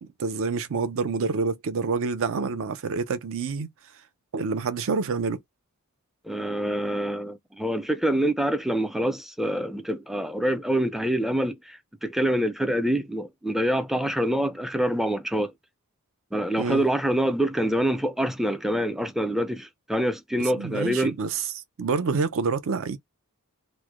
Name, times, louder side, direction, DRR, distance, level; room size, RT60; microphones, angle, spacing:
voice 1, 0.0-3.7 4.3-5.4 16.6-16.8 20.4-21.5 21.8-23.0, right 4 dB, 65° right, 0.5 m, -27 dB
voice 2, 6.3-15.5 16.3-21.1, right 1 dB, ahead, 0.4 m, -26 dB
3.1 x 2.1 x 3.5 m
head